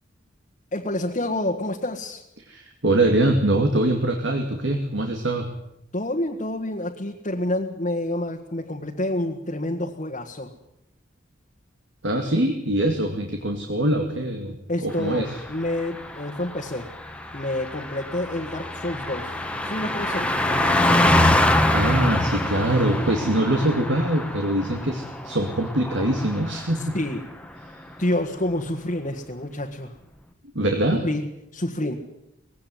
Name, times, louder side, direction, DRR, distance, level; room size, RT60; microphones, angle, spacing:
voice 1, 0.7-2.2 5.9-10.5 14.7-16.9 17.3-21.2 26.7-27.3 28.0-29.9 31.0-31.9, left 1 dB, 40° left, 1 dB, 1.6 m, -28 dB
voice 2, 2.5-5.5 12.0-15.3 21.7-27.0 30.5-31.0, right 1 dB, 70° right, 4 dB, 2.3 m, -23 dB
Car passing by, 15.0-26.9 27.2-27.5, left 1 dB, 5° left, 1.5 m, -25 dB
20.0 x 16.5 x 9.5 m, 0.81 s
head